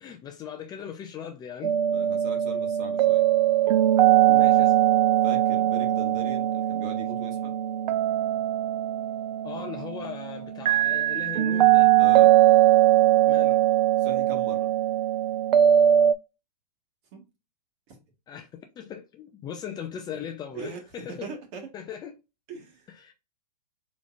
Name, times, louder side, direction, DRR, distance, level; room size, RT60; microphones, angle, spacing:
voice 1, 0.0-1.8 4.3-4.9 9.4-11.9 13.3-13.6 18.3-21.3 21.7-22.2 23.0-23.1, left 8 dB, 20° left, 0.4 m, -39 dB
sound 1, 1.6-16.1, right 12 dB, 80° right, 0.4 m, -21 dB
voice 2, 1.9-3.2 5.2-7.5 12.0-12.3 14.0-14.7 17.1-17.2 17.9-18.0 20.5-20.8 21.1-21.7 22.5-22.9, right 3 dB, 45° right, 1.6 m, -40 dB
4.0 x 3.4 x 2.4 m
hypercardioid pair, 130°, 21 cm